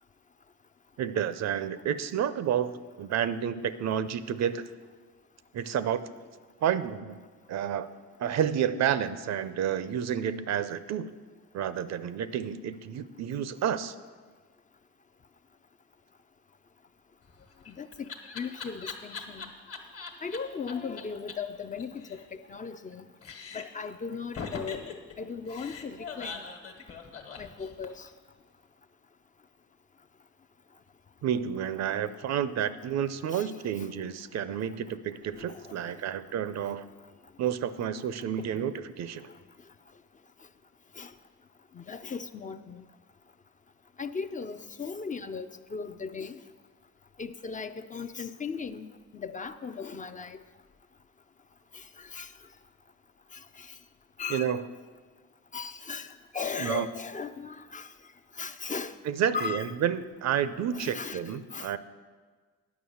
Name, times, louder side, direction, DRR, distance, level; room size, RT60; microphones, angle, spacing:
voice 1, 1.0-2.7 3.0-4.6 5.5-6.0 6.6-7.2 7.5-7.9 8.2-11.1 11.5-13.9 31.2-36.9 37.4-39.3 54.3-54.6 56.6-56.9 59.1-61.8, right 9 dB, 60° right, 14 dB, 0.5 m, -30 dB
Laughter, 17.3-20.4 20.7-20.8 21.0-21.1 21.3-21.4 21.6-22.9 23.2-23.8 24.3-28.1, left 5 dB, 50° left, 1.3 m, -41 dB
voice 2, 17.7-19.5 20.2-23.1 23.5-24.9 25.2-26.5 27.4-28.1 33.3-33.5 33.8-33.9 35.3-35.8 41.0-41.1 41.7-42.9 44.0-46.4 47.2-50.4 51.7-52.3 53.3-53.8 54.2-54.6 55.5-57.9 58.4-59.0 59.3-59.7 60.7-61.7, left 5 dB, 25° left, 9 dB, 0.4 m, -37 dB
9.5 x 6.1 x 7.1 m, 1.5 s
cardioid pair, 90°, 30 cm